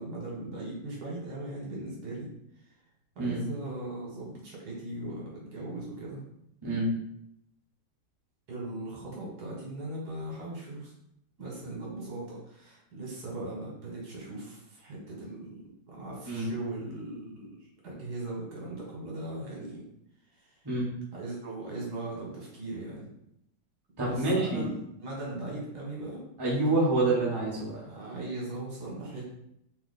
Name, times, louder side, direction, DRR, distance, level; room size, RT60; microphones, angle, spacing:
voice 1, 0.0-2.3 3.1-6.2 8.5-10.9 11.4-17.5 17.8-19.8 20.4-20.5 21.1-23.1 24.0-26.2 27.4-29.5, right 2 dB, 65° right, -3 dB, 1.6 m, -39 dB
voice 2, 6.6-6.9 16.3-16.5 20.6-20.9 24.0-24.7 26.4-27.8, right 2 dB, 20° right, -6 dB, 0.8 m, -27 dB
3.1 x 2.8 x 4.0 m, 0.77 s
omnidirectional pair, 1.9 m